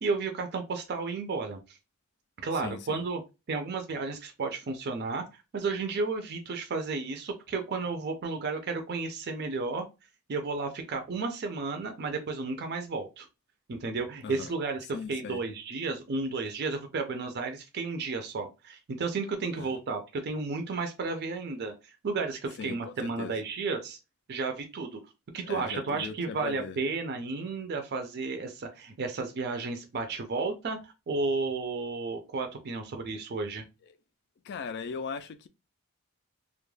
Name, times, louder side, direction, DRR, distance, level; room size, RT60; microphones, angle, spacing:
voice 1, 0.0-1.8 2.4-3.2 3.5-9.9 10.3-13.3 13.7-24.0 24.3-25.0 25.3-33.6, right 4 dB, 45° right, 0.4 m, -33 dB
voice 2, 2.5-3.0 14.2-14.5 14.9-15.4 19.5-19.8 22.6-23.4 25.4-26.8 34.4-35.5, left 5 dB, 50° left, 0.3 m, -39 dB
2.3 x 2.0 x 3.1 m
head